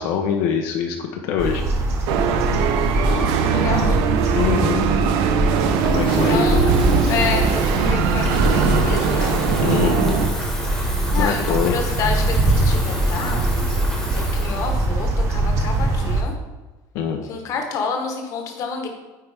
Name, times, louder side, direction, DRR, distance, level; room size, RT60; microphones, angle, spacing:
voice 1, 0.0-1.6 4.3-4.9 5.8-6.7 9.6-10.2 11.2-11.7 16.9-17.2, left 7 dB, 70° left, 3 dB, 0.7 m, -23 dB
sound 1, 1.4-16.2, right 2 dB, 35° right, 1.0 m, -22 dB
sound 2, 2.1-10.3, right 6 dB, 65° right, 0.6 m, -21 dB
voice 2, 3.1-4.0 6.2-6.6 7.1-9.4 11.1-13.4 14.1-16.3 17.2-18.9, left 5 dB, 40° left, 3 dB, 1.1 m, -28 dB
Water tap faucet / Fill (with liquid), 5.5-15.7, left 1 dB, 5° left, 1.1 m, -33 dB
9.2 x 4.5 x 3.4 m, 1.2 s
cardioid pair, 170°, 9 cm